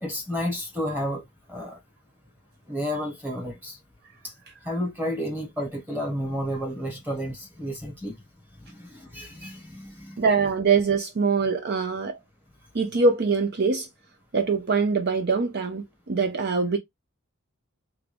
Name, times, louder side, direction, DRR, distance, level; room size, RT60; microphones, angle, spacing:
voice 1, 0.0-1.2 1.5-1.8 2.7-3.8 4.6-8.2 8.7-10.2, equal, 10° right, 1.5 m, -31 dB
voice 2, 10.2-12.2 12.7-13.9 14.3-16.8, right 4 dB, 45° right, 0.5 m, -23 dB
3.7 x 3.4 x 3.4 m
head